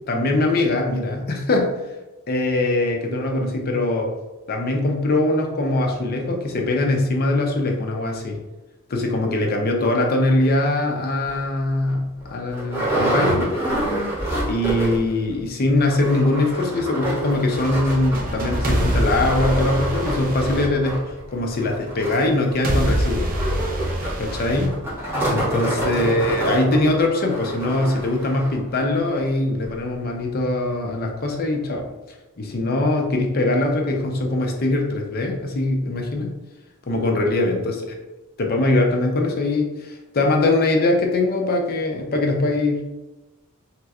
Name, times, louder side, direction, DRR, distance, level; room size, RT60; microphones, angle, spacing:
voice 1, 0.1-1.7 2.3-4.1 4.5-8.4 8.9-13.5 14.5-21.0 21.3-23.3 24.2-24.8 25.3-31.9 32.4-36.3 36.9-37.9 38.4-42.9, left 2 dB, 45° left, 2 dB, 0.5 m, -22 dB
sound 1, 11.3-11.4 11.9-12.0 12.2-15.2 15.4-15.5 15.8-28.6 29.2-29.3 29.6-29.7, right 1 dB, 10° right, 1.2 m, -27 dB
sound 2, 17.4-21.5 22.6-25.5, equal, 40° right, 0.5 m, -25 dB
3.3 x 3.0 x 2.4 m, 1.1 s
head